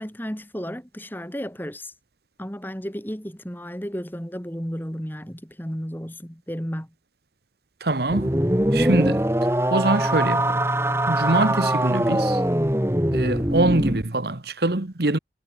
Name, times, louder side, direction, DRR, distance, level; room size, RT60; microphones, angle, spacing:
voice 1, 0.0-1.9 2.4-6.9, equal, 10° left, 5.0 m, -33 dB
voice 2, 7.8-8.4 8.7-9.3 9.7-10.6 11.1-12.4 13.1-15.2, right 2 dB, 60° right, 1.4 m, -23 dB
sound 1, 8.1-14.0, right 1 dB, 15° right, 2.9 m, -22 dB
head